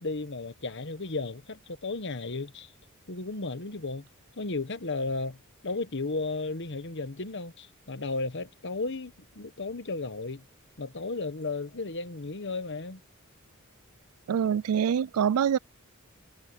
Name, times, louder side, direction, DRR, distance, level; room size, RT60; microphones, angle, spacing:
voice 1, 0.0-2.7 3.1-4.1 4.4-10.4 10.8-13.0, left 3 dB, 55° left, 1.3 m, -34 dB
voice 2, 14.3-15.6, right 8 dB, 80° right, 0.3 m, -25 dB
head